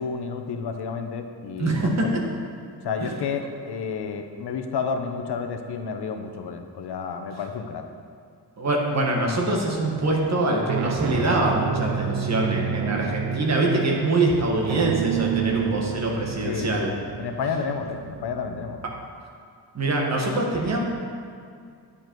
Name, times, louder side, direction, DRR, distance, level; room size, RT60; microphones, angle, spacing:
voice 1, 0.0-2.3 2.8-7.8 16.4-16.7 17.2-18.8, left 5 dB, 75° left, 6 dB, 0.8 m, -30 dB
voice 2, 1.6-2.2 3.0-3.2 8.6-16.9 19.7-20.8, right 2 dB, 40° right, -1 dB, 1.5 m, -24 dB
sound 1, 9.2-9.6 10.4-19.1, right 10 dB, 80° right, 0.5 m, -30 dB
9.8 x 7.3 x 4.6 m, 2.3 s
wide cardioid pair, 155°, 40 cm